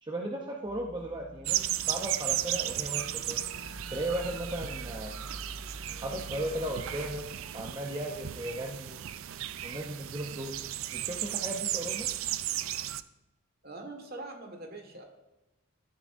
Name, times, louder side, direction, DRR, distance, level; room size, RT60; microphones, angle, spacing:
voice 1, 0.0-3.4 3.9-5.2 6.0-9.0 9.6-10.6 10.9-12.1, right 1 dB, 20° right, 0 dB, 0.7 m, -36 dB
sound 1, 0.6-7.2, right 1 dB, 50° left, 2.7 m, -47 dB
sound 2, 1.4-13.0, right 13 dB, 70° right, 0.4 m, -35 dB
voice 2, 13.6-15.0, right 2 dB, 45° right, 4 dB, 1.6 m, -43 dB
13.0 x 9.7 x 2.6 m, 1.0 s
head